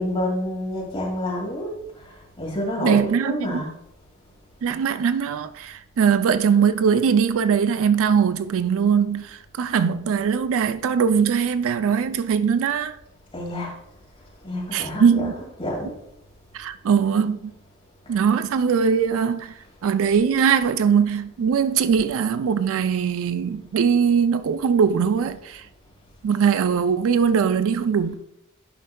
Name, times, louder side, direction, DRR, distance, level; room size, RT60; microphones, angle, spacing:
voice 1, 0.0-3.7 13.3-13.8 14.4-16.0 18.1-18.3, left 1 dB, 25° left, 2.2 m, -29 dB
voice 2, 2.8-3.6 4.6-13.0 14.7-15.3 16.5-17.5 18.1-19.5 19.8-25.6 26.2-28.1, right 6 dB, 65° right, 0.4 m, -21 dB
11.0 x 5.4 x 2.3 m
head